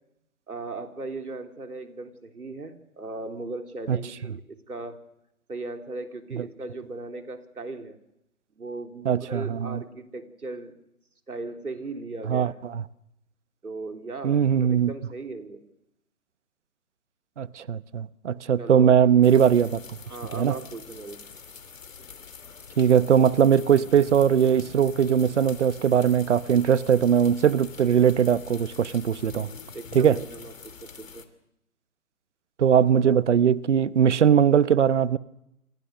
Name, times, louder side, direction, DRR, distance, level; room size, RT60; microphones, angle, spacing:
voice 1, 0.5-5.0 5.5-8.0 8.5-10.7 11.3-12.5 13.6-15.6 18.6-18.9 19.4-19.5 20.1-21.2 29.7-30.5 30.8-31.3, right 3 dB, 85° right, 3.9 m, -37 dB
voice 2, 9.0-9.8 12.3-12.8 14.2-14.9 17.4-19.8 20.3-20.5 22.8-29.5 29.9-30.2 32.6-35.2, right 8 dB, 50° right, 1.0 m, -20 dB
sound 1, 19.2-31.2, left 6 dB, 60° left, 2.8 m, -44 dB
28.5 x 23.5 x 6.6 m
figure-of-eight pair, 150°, 44 cm